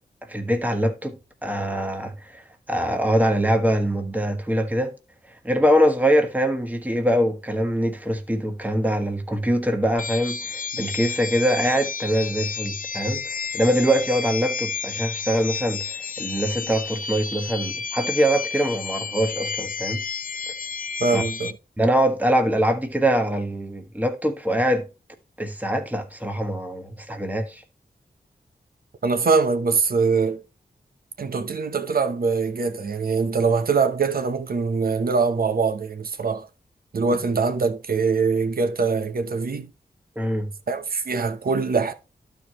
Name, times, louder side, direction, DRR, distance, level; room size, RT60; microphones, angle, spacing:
voice 1, 0.3-4.9 5.4-20.0 21.1-21.2 21.8-24.9 25.4-27.6 40.1-40.5, equal, 10° right, 1.4 m, -23 dB
sound 1, 10.0-21.5, left 5 dB, 55° left, 0.6 m, -31 dB
voice 2, 21.0-21.6 29.0-30.4 31.2-36.5 36.9-39.7 40.7-41.9, right 4 dB, 65° right, 0.9 m, -23 dB
12.0 x 4.7 x 3.0 m
cardioid pair, 55°, 17 cm